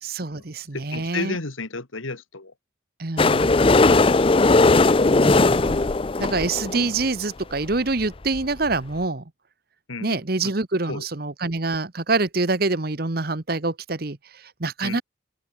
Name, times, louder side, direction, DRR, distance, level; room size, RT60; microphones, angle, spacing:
voice 1, 0.0-1.4 3.0-4.3 5.1-5.9 6.2-9.2 10.0-15.0, right 3 dB, 50° right, 1.2 m, -26 dB
voice 2, 0.7-2.5 9.9-10.5 10.9-11.1 14.8-15.0, left 3 dB, 90° left, 2.4 m, -34 dB
sound 1, 3.2-7.0 7.7-7.8 8.0-8.1 8.3-8.4 8.7-8.8, left 3 dB, 25° left, 0.5 m, -18 dB
open air
head